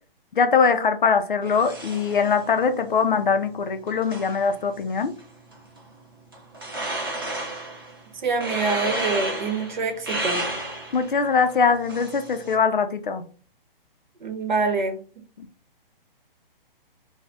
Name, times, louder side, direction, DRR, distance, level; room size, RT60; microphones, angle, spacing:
voice 1, 0.4-5.1 10.9-13.2 15.4-15.5, left 5 dB, 60° left, 8 dB, 0.5 m, -22 dB
sound 1, 1.4-12.6, right 1 dB, 25° right, 0.5 m, -34 dB
voice 2, 8.2-10.5 14.2-15.0, right 4 dB, 55° right, 5 dB, 0.8 m, -25 dB
2.5 x 2.1 x 3.4 m, 0.39 s
hypercardioid pair, 175°, 29 cm